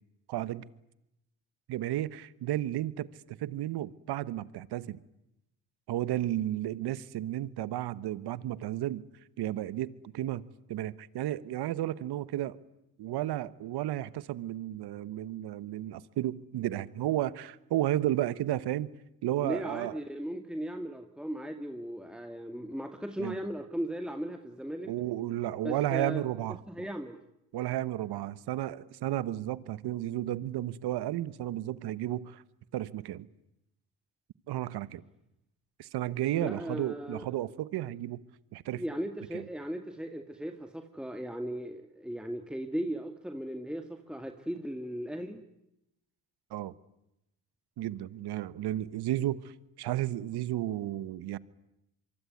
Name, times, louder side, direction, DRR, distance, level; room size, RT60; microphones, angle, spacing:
voice 1, 0.3-0.6 1.7-5.0 5.9-9.0 9.4-10.4 10.7-12.6 13.0-18.9 19.2-20.0 23.2-23.3 24.8-26.6 27.5-32.4 32.7-33.3 34.5-35.0 35.8-38.2 38.5-38.8 39.3-39.4 46.5-46.7 47.8-51.4, right 13 dB, 70° right, 1.3 m, -33 dB
voice 2, 19.4-24.9 25.6-26.2 26.7-27.2 36.4-37.3 38.7-45.4, equal, ahead, 2.3 m, -37 dB
25.5 x 24.0 x 9.5 m
supercardioid pair, 60°, 40 cm